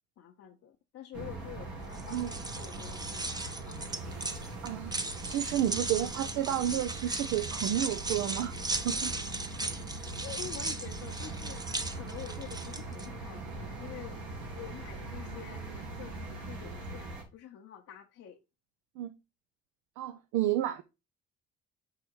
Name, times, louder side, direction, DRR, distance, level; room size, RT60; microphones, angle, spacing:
voice 1, 0.2-3.8 5.7-5.8 10.2-14.2 14.5-18.4, left 10 dB, 55° left, 0.8 m, -47 dB
sound 1, 1.1-17.2, right 2 dB, 90° right, 1.8 m, -41 dB
sound 2, 1.9-13.1, right 2 dB, 15° right, 0.8 m, -37 dB
voice 2, 4.6-4.9 5.2-8.5 8.8-9.1 19.0-19.1 20.0-20.8, right 12 dB, 75° right, 0.6 m, -31 dB
4.9 x 4.8 x 4.5 m
hypercardioid pair, 65°, 31 cm